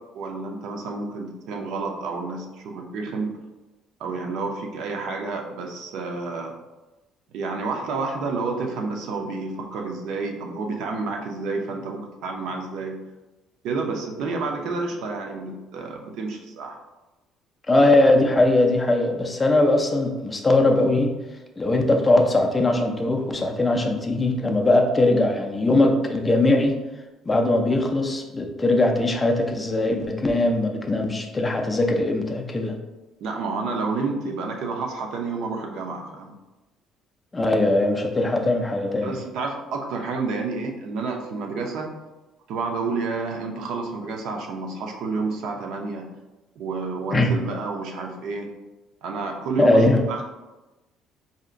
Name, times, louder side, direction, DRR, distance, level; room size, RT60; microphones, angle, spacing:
voice 1, 0.1-3.3 4.0-6.5 7.3-12.9 13.6-16.8 33.2-36.4 39.0-41.9 42.5-46.1 46.6-48.5 49.0-49.8 50.1-50.2, right 4 dB, 65° right, 2 dB, 0.6 m, -29 dB
voice 2, 17.7-21.2 21.6-26.8 27.3-32.8 37.3-39.2 47.1-47.3 49.6-50.0, left 2 dB, 15° left, 3 dB, 0.4 m, -20 dB
5.0 x 2.8 x 2.5 m, 1.1 s
cardioid pair, 165°, 0 cm